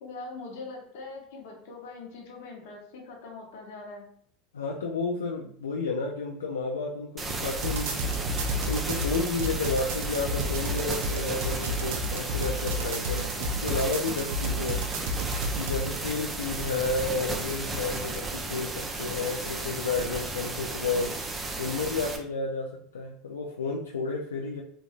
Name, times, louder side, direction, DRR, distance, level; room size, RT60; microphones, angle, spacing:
voice 1, 0.0-4.1, left 3 dB, 70° left, 0 dB, 0.9 m, -42 dB
voice 2, 4.5-8.0 8.7-14.8 15.6-21.2 21.6-24.6, left 3 dB, 90° left, 0 dB, 0.3 m, -31 dB
sound 1, 7.2-22.2, right 2 dB, 25° right, 0.5 m, -34 dB
sound 2, 7.5-15.8, right 1 dB, 70° right, 0.5 m, -31 dB
3.0 x 2.5 x 2.4 m, 0.62 s
hypercardioid pair, 85°, 0 cm